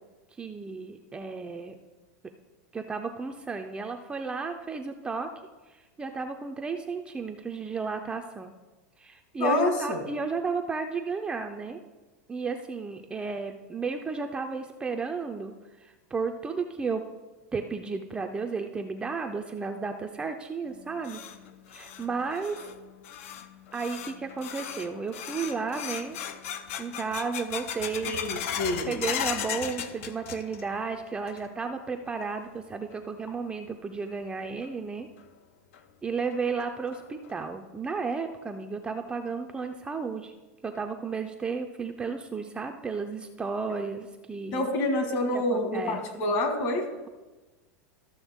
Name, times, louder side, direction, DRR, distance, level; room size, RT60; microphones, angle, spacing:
voice 1, 0.4-1.7 2.7-5.3 5.7-8.5 9.0-11.8 12.3-15.5 15.8-17.0 17.5-21.2 21.7-22.6 23.7-26.2 26.8-28.1 28.9-35.1 36.0-40.3 40.6-44.7 45.3-46.2, right 4 dB, 10° right, 4 dB, 0.4 m, -33 dB
voice 2, 9.4-10.0 28.0-28.9 44.5-46.9, left 1 dB, 45° left, 5 dB, 1.7 m, -27 dB
sound 1, 20.7-30.8 31.1-31.7 32.1-32.2 32.9-33.0 34.6-34.7 35.2-35.3 35.7-35.8 36.3-36.4 36.9-37.3, left 9 dB, 70° left, 0.6 m, -37 dB
13.0 x 6.4 x 3.6 m, 1.2 s
supercardioid pair, 150°, 8 cm